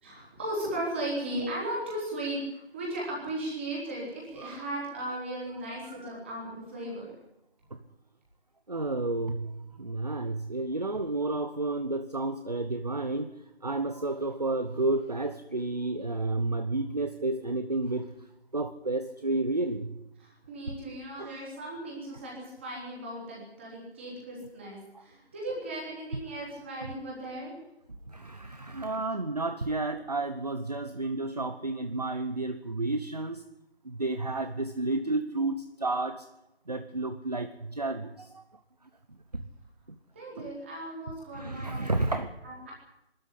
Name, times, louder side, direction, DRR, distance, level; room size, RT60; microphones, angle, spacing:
voice 1, 0.0-7.1 20.2-27.5 40.1-42.1 42.4-42.7, right 1 dB, 10° right, -4 dB, 4.1 m, -36 dB
voice 2, 5.8-6.2 8.7-18.1 18.5-20.0 20.7-20.8 21.2-21.4 24.9-25.0 28.1-33.4 33.8-36.3 36.7-38.4 39.1-39.5 39.9-40.0 40.4-40.5 41.3-42.3, right 2 dB, 40° right, 9 dB, 1.1 m, -31 dB
22.5 x 13.5 x 9.8 m, 0.88 s
figure-of-eight pair, 175°, 32 cm